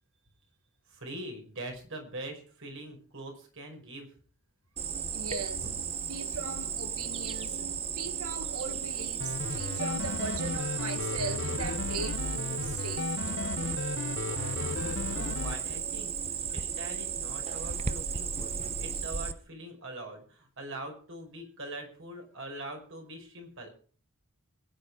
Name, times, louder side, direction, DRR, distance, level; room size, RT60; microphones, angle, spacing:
voice 1, 0.9-4.1 5.6-5.7 14.2-14.5 14.8-16.1 16.5-23.7, right 1 dB, 60° right, 5.5 m, -43 dB
Cricket, 4.8-19.3, right 7 dB, 30° right, 0.8 m, -35 dB
voice 2, 5.1-5.6 6.1-13.1, right 4 dB, 80° right, 1.7 m, -39 dB
sound 1, 9.2-15.6, left 3 dB, 55° left, 0.8 m, -34 dB
22.0 x 10.0 x 4.9 m
head